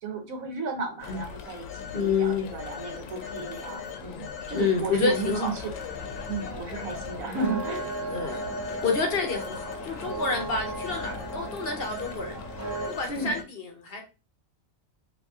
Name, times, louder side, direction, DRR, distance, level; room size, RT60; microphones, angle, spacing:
voice 1, 0.0-5.7 6.3-7.9 13.1-13.4, right 4 dB, 85° right, 4 dB, 1.3 m, -33 dB
Telephone, 1.0-13.4, left 7 dB, 80° left, 1.0 m, -39 dB
voice 2, 1.9-2.5 4.5-5.5 8.1-8.4 8.8-12.4 12.9-14.0, left 4 dB, 55° left, 4 dB, 0.8 m, -28 dB
sound 1, 5.1-12.9, right 3 dB, 20° left, 0.4 m, -37 dB
2.9 x 2.7 x 3.5 m, 0.30 s
omnidirectional pair, 1.4 m